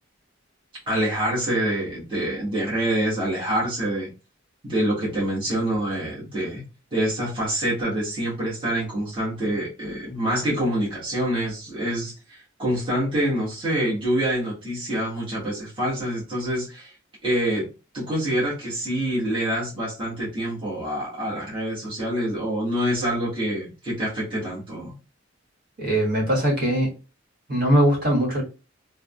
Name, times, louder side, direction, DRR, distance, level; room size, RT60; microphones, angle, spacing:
voice 1, 0.9-4.1 4.6-6.6 6.9-16.9 17.2-17.7 17.9-24.9, right 1 dB, 25° right, 1.4 m, -26 dB
voice 2, 25.8-26.9 27.5-28.4, equal, 55° right, 1.6 m, -21 dB
3.5 x 2.2 x 2.3 m
head